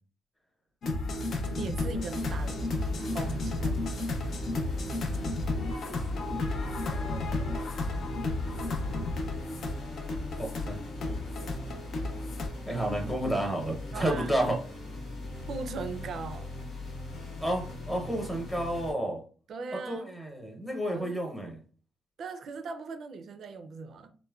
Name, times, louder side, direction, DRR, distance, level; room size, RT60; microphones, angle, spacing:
sound 1, 0.8-12.5, left 2 dB, 60° left, 0.5 m, -33 dB
voice 1, 1.6-4.2 13.9-14.4 15.5-16.5 19.5-20.1 20.9-21.2 22.2-24.1, right 4 dB, 60° right, 0.4 m, -39 dB
sound 2, 2.1-18.9, left 2 dB, 80° left, 1.0 m, -40 dB
voice 2, 6.9-7.7 10.3-10.8 12.7-14.5 17.4-19.2 19.9-21.6, right 1 dB, 10° left, 0.9 m, -31 dB
3.0 x 2.1 x 2.3 m
cardioid pair, 90°, 0 cm